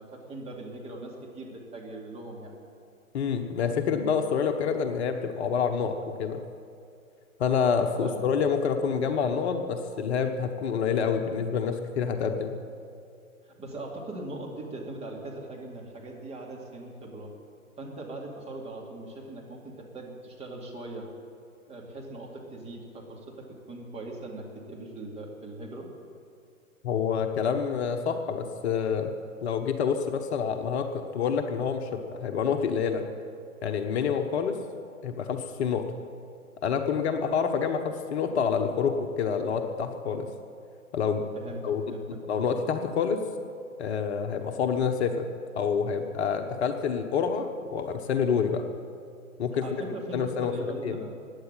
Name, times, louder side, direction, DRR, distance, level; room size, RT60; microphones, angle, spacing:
voice 1, 0.0-2.6 8.0-8.3 13.4-17.3 17.8-21.1 21.7-25.9 41.3-42.0 42.3-42.5 49.6-51.2, right 2 dB, 15° right, -2 dB, 2.6 m, -40 dB
voice 2, 3.1-6.4 7.4-12.5 26.8-29.1 29.4-33.0 33.6-34.5 35.0-35.8 36.6-40.3 40.9-41.2 41.6-41.8 42.3-43.2 43.8-45.1 45.5-48.6 49.4-49.6 50.1-50.5 50.8-51.0, left 6 dB, 50° left, 6 dB, 1.3 m, -27 dB
16.0 x 9.9 x 9.0 m, 2.4 s
hypercardioid pair, 125°, 42 cm